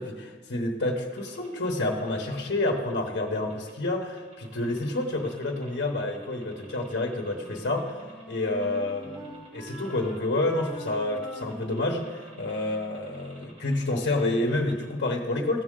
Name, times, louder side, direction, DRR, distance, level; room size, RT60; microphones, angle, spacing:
voice 1, 0.0-8.0 8.3-15.6, left 2 dB, 75° left, 1 dB, 1.0 m, -29 dB
sound 1, 1.2-15.0, right 1 dB, 35° right, 3.0 m, -54 dB
Wind instrument woodwind instrument, 7.3-12.9, left 1 dB, 10° right, 2.6 m, -44 dB
15.5 x 6.4 x 3.7 m, 1.4 s
head